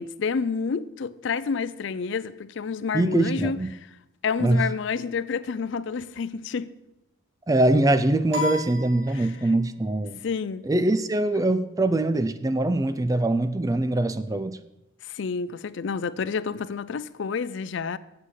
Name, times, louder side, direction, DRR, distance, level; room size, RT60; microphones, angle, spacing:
voice 1, 0.0-3.9 4.2-6.7 9.1-9.4 10.2-10.7 15.0-18.0, left 5 dB, 60° left, 0.4 m, -29 dB
voice 2, 2.9-3.7 4.4-4.7 7.5-10.2 10.6-14.6, right 2 dB, 15° right, 0.3 m, -23 dB
sound 1, 8.3-9.8, left 2 dB, 60° right, 2.1 m, -33 dB
8.3 x 7.6 x 6.4 m
head